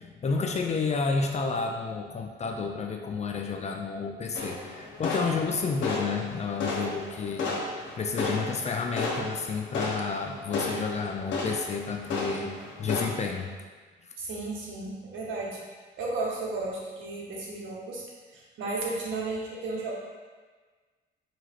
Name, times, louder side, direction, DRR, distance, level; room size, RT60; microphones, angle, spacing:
voice 1, 0.2-12.5 12.8-13.5 14.0-14.1, left 4 dB, 35° left, 3 dB, 0.3 m, -31 dB
sound 1, 4.3-13.0, left 3 dB, 70° left, 0.8 m, -34 dB
voice 2, 14.2-15.6 16.0-18.0 18.3-19.9, right 3 dB, 75° right, -3 dB, 1.0 m, -34 dB
4.7 x 3.0 x 2.4 m, 1.4 s
cardioid pair, 90°, 20 cm